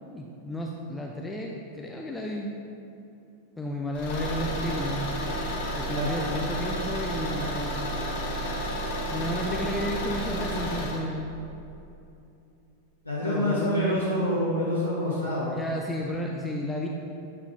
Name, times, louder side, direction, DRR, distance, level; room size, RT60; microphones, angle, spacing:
voice 1, 0.1-2.5 3.6-5.2 5.7-8.2 9.1-11.4 13.2-14.0 15.5-16.9, equal, 10° left, -1 dB, 0.5 m, -32 dB
Car / Engine, 3.9-11.0, equal, 50° left, 1.1 m, -31 dB
voice 2, 13.0-15.6 16.2-16.3, left 1 dB, 85° left, -7 dB, 1.0 m, -27 dB
8.1 x 5.8 x 2.6 m, 2.7 s
figure-of-eight pair, 90°, 0 cm